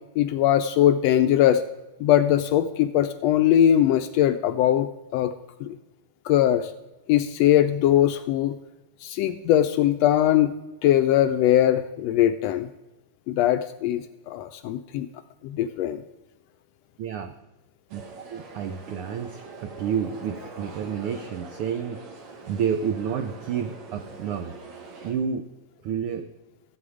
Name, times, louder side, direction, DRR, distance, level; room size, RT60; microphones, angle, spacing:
voice 1, 0.2-1.6 2.0-5.3 5.6-5.8 6.2-6.7 7.1-8.6 9.0-10.5 10.8-12.7 13.3-15.1 15.4-16.0, left 11 dB, 80° left, 10 dB, 1.5 m, -21 dB
voice 2, 17.0-17.3 17.9-18.0 18.3-22.0 22.5-24.6 25.0-25.5 25.8-26.3, right 7 dB, 90° right, 8 dB, 1.2 m, -29 dB
sound 1, 17.9-25.1, right 3 dB, 70° right, 3.0 m, -43 dB
14.5 x 8.4 x 4.9 m, 1.0 s
omnidirectional pair, 3.3 m